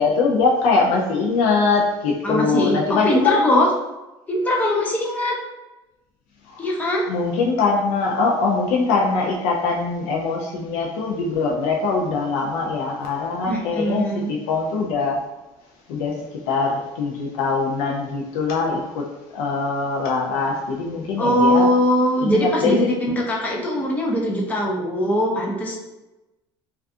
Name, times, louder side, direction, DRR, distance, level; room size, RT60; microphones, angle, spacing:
voice 1, 0.0-3.4 6.6-6.7 7.1-15.2 15.9-16.2 16.5-19.1 19.3-21.7 22.2-22.7, left 4 dB, 85° left, -1 dB, 0.4 m, -22 dB
voice 2, 2.2-3.7 4.3-5.4 6.6-7.0 13.5-14.3 21.2-25.8, equal, 15° left, -2 dB, 0.4 m, -21 dB
2.3 x 2.3 x 2.5 m, 1.0 s
cardioid pair, 165°, 10 cm